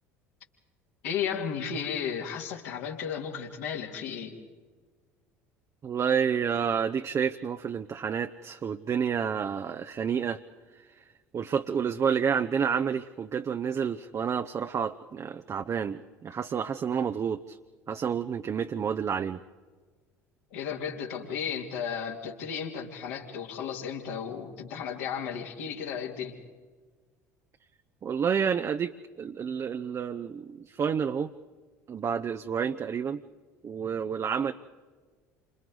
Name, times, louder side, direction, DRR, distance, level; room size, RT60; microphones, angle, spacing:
voice 1, 1.0-4.4 20.5-26.3, left 7 dB, 65° left, 1 dB, 3.0 m, -34 dB
voice 2, 5.8-10.4 11.3-17.6 17.9-19.4 28.0-28.9 29.2-31.3 31.9-33.2 33.6-34.5, right 7 dB, 35° right, 8 dB, 0.7 m, -29 dB
29.0 x 26.0 x 4.0 m, 1.4 s
figure-of-eight pair, 65°, 9 cm